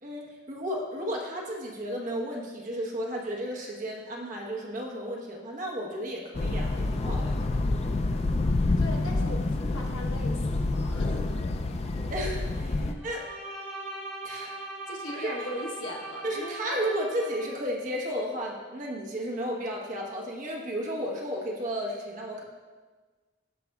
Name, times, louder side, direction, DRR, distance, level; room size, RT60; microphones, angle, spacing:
voice 1, 0.0-7.4 12.1-13.2 14.2-14.6 15.1-15.3 16.2-22.4, equal, 40° right, -1 dB, 1.0 m, -33 dB
sound 1, 6.3-12.9, left 2 dB, 30° left, 0.3 m, -28 dB
voice 2, 8.8-11.3 12.7-13.0 14.8-16.8, left 1 dB, 75° left, 0 dB, 1.1 m, -39 dB
Bowed string instrument, 13.0-17.6, right 2 dB, 5° left, 1.5 m, -40 dB
12.5 x 4.9 x 2.3 m, 1.4 s
head